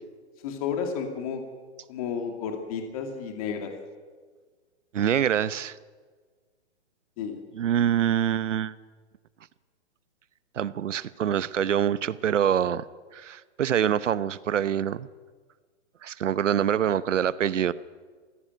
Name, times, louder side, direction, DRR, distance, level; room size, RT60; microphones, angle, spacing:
voice 1, 0.4-1.4 1.9-3.7 7.2-7.4, left 6 dB, 30° left, 4 dB, 2.4 m, -32 dB
voice 2, 4.9-5.8 7.5-8.7 10.5-12.9 13.1-15.1 16.0-17.7, right 9 dB, 85° right, 16 dB, 1.0 m, -25 dB
22.0 x 16.0 x 9.1 m, 1.5 s
hypercardioid pair, 165°, 36 cm